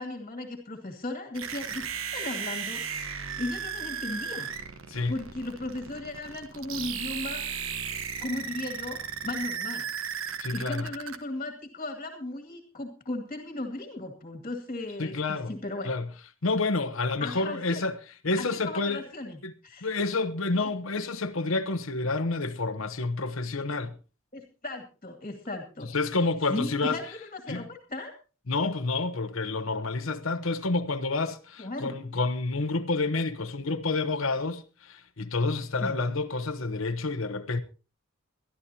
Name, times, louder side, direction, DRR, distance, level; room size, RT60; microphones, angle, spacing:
voice 1, 0.0-4.5 5.1-7.4 8.2-9.9 10.5-15.9 17.2-17.8 18.4-19.9 20.5-20.7 24.3-25.9 26.5-28.1 31.6-31.9 35.8-36.0, left 2 dB, 35° left, 2.2 m, -36 dB
sound 1, 1.3-11.2, right 6 dB, 65° right, 1.3 m, -35 dB
voice 2, 10.4-10.9 15.0-15.5 15.8-16.1 16.4-18.0 18.2-19.0 19.4-19.5 19.8-24.0 25.8-27.0 27.5-27.7 28.5-37.6, left 3 dB, 65° left, 1.0 m, -29 dB
22.5 x 12.5 x 2.9 m
head